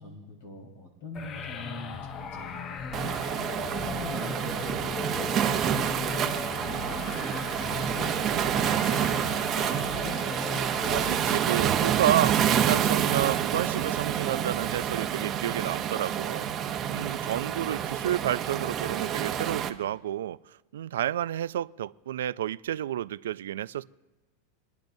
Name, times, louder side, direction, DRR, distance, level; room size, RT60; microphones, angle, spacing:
voice 1, 0.0-3.2 3.7-6.3 6.6-7.0 7.4-10.2, left 2 dB, 70° left, 4.2 m, -43 dB
sound 1, 1.1-11.7, left 5 dB, 30° left, 0.6 m, -37 dB
Waves surf, 2.9-19.7, right 9 dB, 30° right, 0.8 m, -28 dB
voice 2, 10.9-16.5 16.9-23.8, right 11 dB, 90° right, 0.3 m, -30 dB
27.5 x 10.5 x 2.7 m
supercardioid pair, 135°, 0 cm